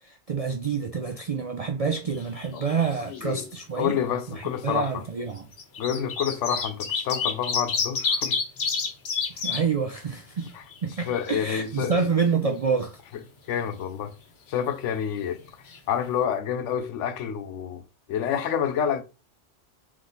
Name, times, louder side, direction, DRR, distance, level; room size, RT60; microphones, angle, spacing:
voice 1, 0.0-4.0 4.4-5.5 9.3-10.5 10.8-13.0, right 5 dB, 65° right, 0.3 m, -27 dB
sound 1, 2.1-2.9 3.1-3.2 4.4-4.5 5.4-9.6 10.1-10.2 10.4-11.5 15.3-15.4 15.7-15.8, left 5 dB, 60° left, 1.1 m, -28 dB
voice 2, 3.1-3.5 3.8-5.0 5.8-8.4 10.5-10.6 11.0-12.0 13.5-14.1 14.5-15.4 15.9-17.8 18.1-19.0, left 8 dB, 90° left, 1.0 m, -28 dB
3.6 x 3.0 x 3.9 m
omnidirectional pair, 1.2 m